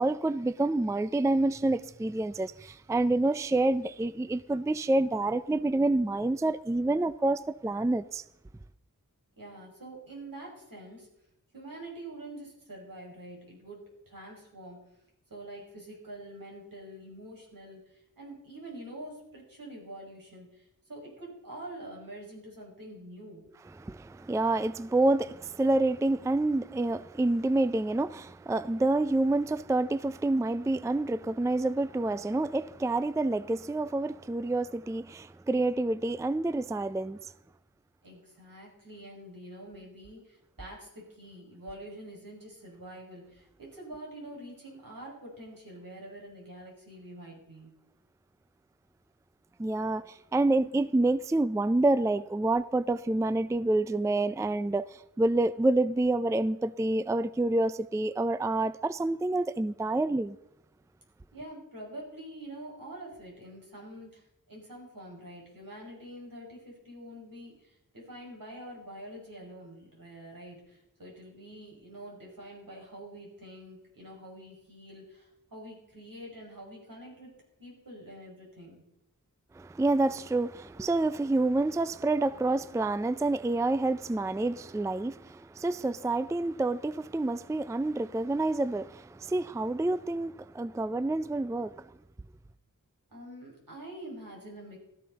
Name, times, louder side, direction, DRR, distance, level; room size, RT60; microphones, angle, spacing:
voice 1, 0.0-8.2 23.8-37.2 49.6-60.4 79.5-91.8, right 2 dB, 10° right, 0.4 m, -28 dB
voice 2, 9.4-11.1 11.5-14.8 15.3-23.4 38.0-47.7 61.3-77.3 77.6-78.8 93.1-94.8, right 1 dB, 75° right, 5.7 m, -46 dB
17.0 x 13.0 x 4.0 m
wide cardioid pair, 60°, 34 cm